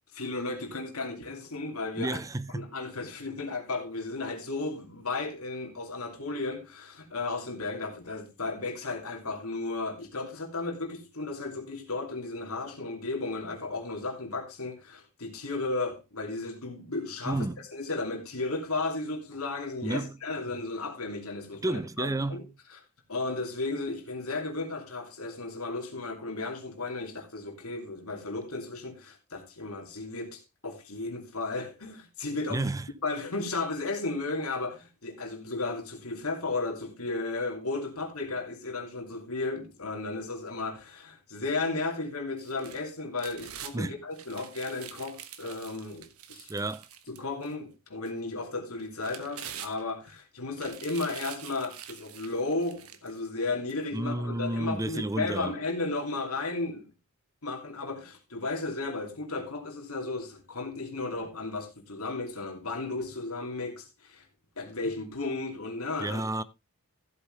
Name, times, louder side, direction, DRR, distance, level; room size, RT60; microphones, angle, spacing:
voice 1, 0.1-2.2 2.5-22.4 22.7-22.8 23.1-32.7 33.0-46.5 47.1-56.9 57.4-64.2 64.6-66.2, left 3 dB, 70° left, 2.7 m, -34 dB
voice 2, 2.0-2.7 17.3-17.6 19.8-20.2 21.6-22.5 32.5-32.9 43.7-44.0 46.5-46.8 53.9-55.6 66.0-66.4, right 2 dB, 15° right, 0.5 m, -31 dB
sound 1, 42.4-43.8 44.1-47.5 48.1-48.2 48.8-50.1 50.5-53.2 53.7-53.8, right 9 dB, 75° right, 1.3 m, -45 dB
15.0 x 8.1 x 3.3 m
head